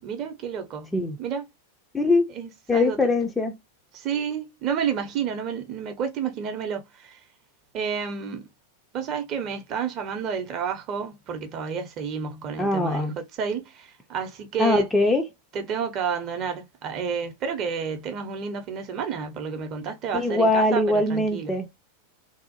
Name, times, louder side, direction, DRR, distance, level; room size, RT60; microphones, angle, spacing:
voice 1, 0.0-0.9 1.2-1.4 2.3-3.0 3.9-7.2 7.7-8.5 8.9-14.9 15.5-21.5, right 6 dB, 35° right, 0.7 m, -30 dB
voice 2, 1.9-2.3 2.7-3.6 12.6-13.2 14.6-15.3 20.1-21.7, left 2 dB, 10° left, 0.5 m, -22 dB
2.7 x 2.0 x 2.7 m
figure-of-eight pair, 90°, 0 cm